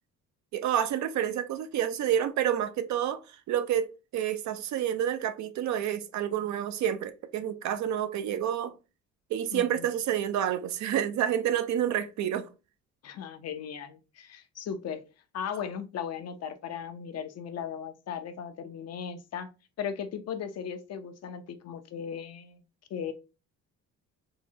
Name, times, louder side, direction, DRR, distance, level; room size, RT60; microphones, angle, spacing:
voice 1, 0.5-8.7 9.3-12.5, right 10 dB, 70° right, 0.5 m, -29 dB
voice 2, 9.5-9.9 13.0-15.0 15.3-19.5 19.8-22.6 22.9-23.1, left 7 dB, 55° left, 0.5 m, -37 dB
3.7 x 2.0 x 2.7 m
cardioid pair, 90°, 30 cm